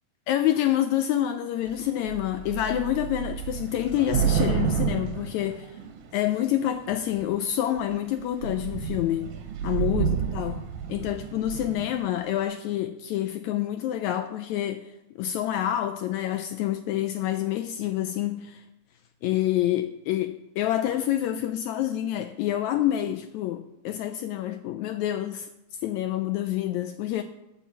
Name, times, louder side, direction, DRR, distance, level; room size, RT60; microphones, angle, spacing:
voice 1, 0.3-5.8 6.1-9.3 9.6-10.6 10.9-14.9 15.2-18.6 19.2-25.5 25.8-27.2, left 12 dB, 80° left, 1.7 m, -27 dB
Thunder / Rain, 1.7-1.8 2.1-6.2 6.9-7.4 7.8-7.9 8.2-12.0, right 8 dB, 75° right, 2.4 m, -30 dB
12.0 x 5.5 x 7.1 m
omnidirectional pair, 3.7 m